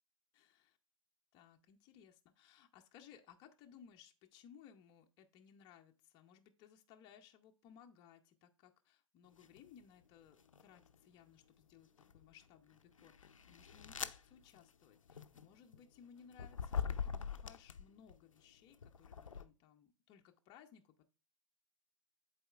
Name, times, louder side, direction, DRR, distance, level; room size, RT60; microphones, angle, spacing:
voice 1, 0.3-0.8 1.3-17.1 17.4-21.0, left 8 dB, 30° left, 4 dB, 0.6 m, -62 dB
sound 1, 9.4-9.7 10.3-11.1 11.7-18.1 18.7-19.4, left 6 dB, 80° left, 0.5 m, -44 dB
10.5 x 4.2 x 2.4 m, 0.35 s
figure-of-eight pair, 110°, 16 cm